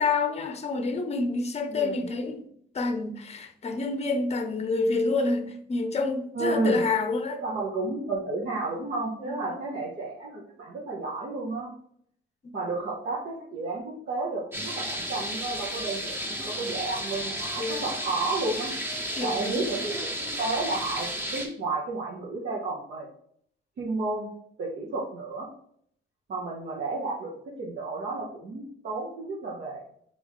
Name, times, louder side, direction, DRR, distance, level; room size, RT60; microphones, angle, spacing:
voice 1, 0.0-2.5 2.7-7.4 9.2-9.6 12.4-12.6 17.6-17.9 19.1-19.7, left 3 dB, 35° left, 0.6 m, -28 dB
voice 2, 1.7-2.0 6.3-6.8 7.4-11.7 12.5-18.7 19.2-20.0 20.4-23.1 23.8-24.3 24.6-25.5 26.3-27.3 27.6-29.8, right 3 dB, 60° right, 1.1 m, -32 dB
sound 1, 14.5-21.5, equal, 10° right, 1.2 m, -33 dB
3.9 x 3.5 x 3.5 m
cardioid pair, 90°, 20 cm